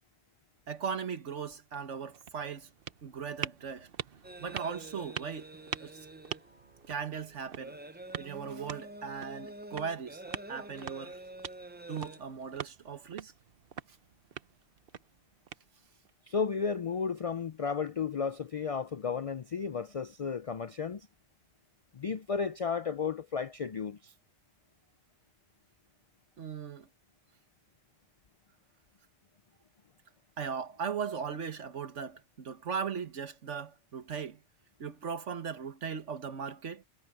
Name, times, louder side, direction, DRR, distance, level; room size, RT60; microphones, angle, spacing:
voice 1, 0.7-2.7 3.0-3.9 4.4-5.5 5.8-6.0 6.9-7.8 8.2-10.2 10.5-11.2 11.9-13.3 26.4-26.9 30.4-34.4 34.8-36.8, right 6 dB, 75° right, 1.6 m, -38 dB
sound 1, 1.6-16.1, right 8 dB, 55° right, 0.9 m, -45 dB
sound 2, 4.2-12.6, right 2 dB, 15° right, 0.4 m, -48 dB
voice 2, 16.3-21.1 21.9-24.1, left 6 dB, 65° left, 0.3 m, -33 dB
omnidirectional pair, 1.2 m